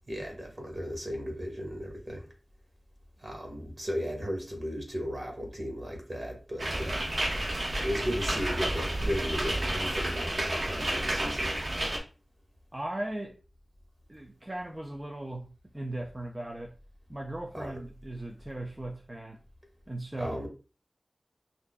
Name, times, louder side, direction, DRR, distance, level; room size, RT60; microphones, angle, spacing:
voice 1, 0.1-2.3 3.2-7.1 7.8-11.6 17.5-17.7 20.1-20.5, equal, 45° right, 1.5 m, -35 dB
sound 1, 6.6-12.0, right 1 dB, 75° right, 1.0 m, -31 dB
voice 2, 12.7-13.4 14.1-16.7 17.1-19.4 19.9-20.5, right 1 dB, 30° right, 0.5 m, -38 dB
6.2 x 2.6 x 2.2 m
wide cardioid pair, 55°, 0 cm